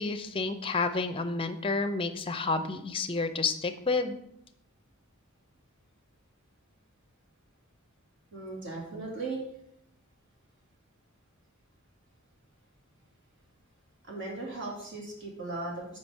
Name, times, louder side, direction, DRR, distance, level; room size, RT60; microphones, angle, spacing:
voice 1, 0.0-4.2, left 3 dB, 25° left, 8 dB, 0.6 m, -30 dB
voice 2, 8.3-9.4 14.0-16.0, right 2 dB, 60° right, -2 dB, 2.2 m, -37 dB
6.0 x 5.0 x 5.4 m, 0.76 s
head